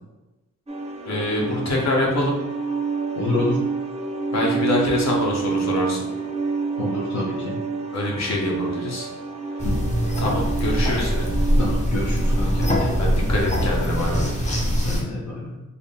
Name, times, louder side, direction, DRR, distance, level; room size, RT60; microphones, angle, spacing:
sound 1, 0.7-14.4, right 4 dB, 20° right, 0.5 m, -29 dB
voice 1, 1.1-2.3 4.3-6.0 7.9-9.1 10.2-11.3 13.0-14.3, left 1 dB, 60° left, -2 dB, 1.1 m, -24 dB
voice 2, 3.2-3.6 6.8-7.6 9.6-9.7 11.6-13.0 14.8-15.5, left 2 dB, 85° left, -4 dB, 0.7 m, -27 dB
sound 2, 9.6-15.0, equal, 25° left, 0.8 m, -22 dB
3.4 x 2.1 x 4.2 m, 1.1 s
cardioid pair, 75°, 30 cm